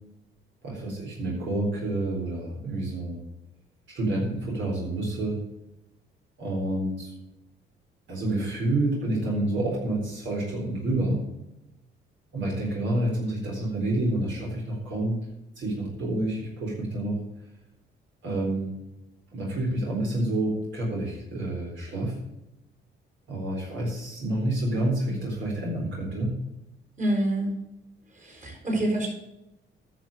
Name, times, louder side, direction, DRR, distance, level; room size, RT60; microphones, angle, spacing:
voice 1, 0.6-3.2 3.9-5.4 6.4-7.1 8.1-11.3 12.3-15.2 15.6-17.2 18.2-18.7 19.3-22.2 23.3-26.4, right 1 dB, 70° right, -3 dB, 4.0 m, -28 dB
voice 2, 27.0-27.5 28.2-29.1, right 1 dB, 40° right, 0 dB, 4.9 m, -26 dB
10.0 x 6.6 x 6.9 m, 0.89 s
cardioid pair, 90°, 20 cm